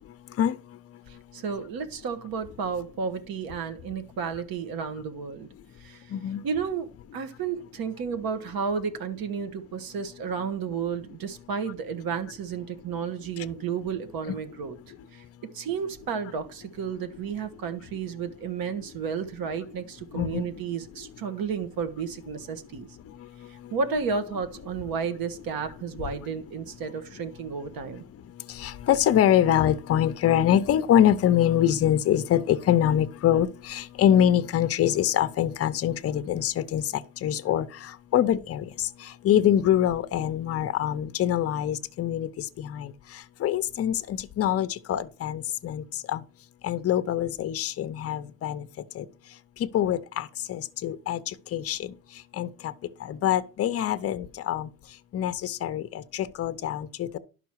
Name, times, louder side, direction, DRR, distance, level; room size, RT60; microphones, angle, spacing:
voice 1, 1.1-5.5 5.8-6.1 6.4-14.8 15.1-23.0 23.5-28.0, right 6 dB, 70° right, 1.6 m, -32 dB
voice 2, 20.1-20.4 28.6-37.7 38.1-38.9 39.2-42.9 43.4-46.2 46.6-48.7 49.0-49.1 49.7-51.2 51.5-51.9 52.4-52.7 53.1-54.7 55.1-57.2, left 10 dB, 40° left, 0.7 m, -24 dB
11.5 x 6.0 x 4.6 m
cardioid pair, 170°, 37 cm